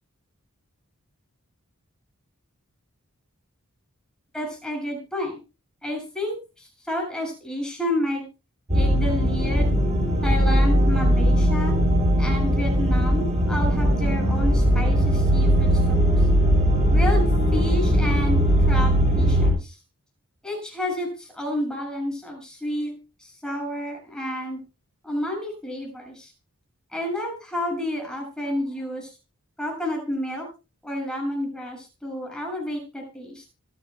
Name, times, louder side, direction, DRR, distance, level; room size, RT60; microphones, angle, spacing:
voice 1, 4.3-5.4 5.8-8.3 8.7-9.7 10.2-11.7 12.2-16.3 16.9-19.8 20.4-22.9 23.2-24.6 25.0-26.3 26.9-29.2 29.6-30.5 30.8-33.4, left 1 dB, 5° left, 0 dB, 7.3 m, -30 dB
sound 1, 8.7-19.5, equal, 30° right, 6.2 m, -19 dB
25.5 x 10.5 x 2.3 m, 0.31 s
head